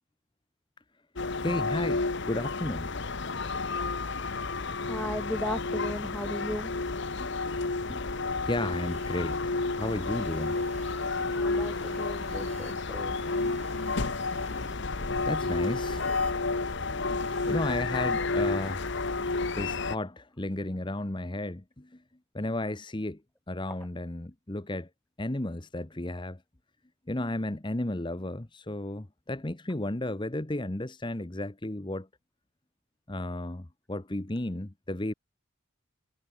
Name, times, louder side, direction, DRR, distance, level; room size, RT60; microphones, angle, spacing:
sound 1, 1.2-20.0, left 3 dB, 55° left, 1.2 m, -31 dB
voice 1, 1.4-2.9 4.2-4.3 4.7-4.8 7.2-7.4 7.9-10.6 14.9-16.1 17.4-18.9 19.5-22.0 22.3-23.2 23.5-24.9 25.2-26.4 27.1-32.1 33.1-35.1, left 1 dB, 20° left, 0.9 m, -33 dB
voice 2, 4.8-6.7 11.3-13.2 23.7-23.8, equal, 5° left, 0.6 m, -36 dB
sound 2, 8.7-16.8 17.2-17.6, right 3 dB, 30° right, 1.6 m, -50 dB
head